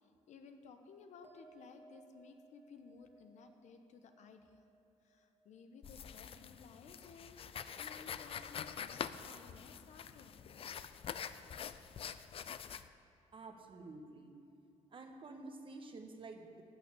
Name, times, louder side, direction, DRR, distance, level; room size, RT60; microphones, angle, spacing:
voice 1, 0.0-4.6 5.0-10.9, left 5 dB, 70° left, 6 dB, 1.0 m, -57 dB
sound 1, 1.2-7.9 8.2-8.8, right 3 dB, 15° right, 1.4 m, -66 dB
sound 2, 5.8-12.9, left 8 dB, 50° left, 0.5 m, -46 dB
voice 2, 13.3-14.3 14.9-16.6, right 3 dB, 45° right, 4 dB, 1.4 m, -50 dB
12.5 x 6.3 x 8.3 m, 2.8 s
cardioid pair, 100°, 13 cm